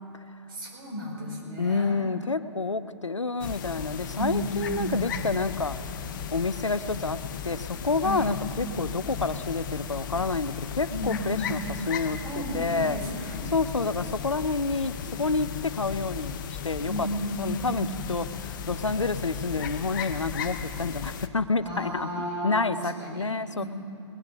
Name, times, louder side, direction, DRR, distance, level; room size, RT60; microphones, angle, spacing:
voice 1, 0.5-2.0 4.1-5.1 8.0-8.3 10.9-11.7 12.2-13.5 16.9-18.0 21.6-23.3 23.6-23.7, equal, 50° right, -2 dB, 4.7 m, -33 dB
voice 2, 1.6-5.8 6.3-7.2 7.4-13.0 13.5-17.1 17.4-22.1 22.4-23.6, left 3 dB, 90° left, 14 dB, 0.5 m, -29 dB
sound 1, 3.4-21.3, left 7 dB, 45° left, 0.7 m, -36 dB
20.5 x 8.4 x 6.8 m, 2.7 s
figure-of-eight pair, 120°, 15 cm